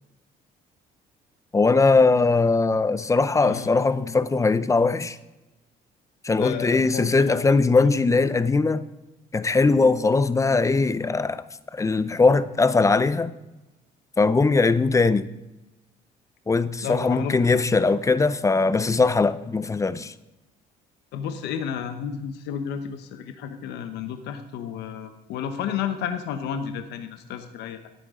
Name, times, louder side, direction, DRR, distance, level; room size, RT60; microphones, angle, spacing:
voice 1, 1.5-5.2 6.2-8.8 9.3-11.4 11.7-13.3 14.2-15.3 16.5-20.1, left 3 dB, 20° left, 0.6 m, -20 dB
voice 2, 3.4-3.7 6.4-7.4 7.8-7.9 16.8-17.5 21.1-27.9, left 8 dB, 80° left, 1.1 m, -32 dB
16.5 x 9.2 x 3.7 m
cardioid pair, 110°, 17 cm